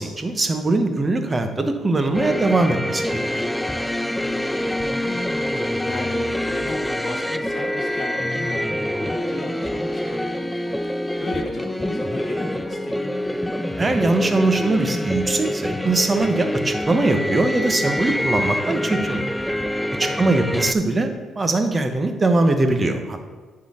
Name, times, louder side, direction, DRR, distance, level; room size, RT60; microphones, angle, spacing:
voice 1, 0.0-3.1 13.8-19.3 20.0-21.1 21.4-23.2, right 2 dB, 25° right, 6 dB, 0.9 m, -21 dB
sound 1, 2.1-20.7, left 1 dB, 5° left, 0.3 m, -26 dB
voice 2, 4.5-5.2 5.6-10.5 10.8-13.4 20.0-20.4, left 2 dB, 30° left, -2 dB, 1.9 m, -36 dB
10.5 x 3.9 x 4.9 m, 1.4 s
cardioid pair, 90°, 0 cm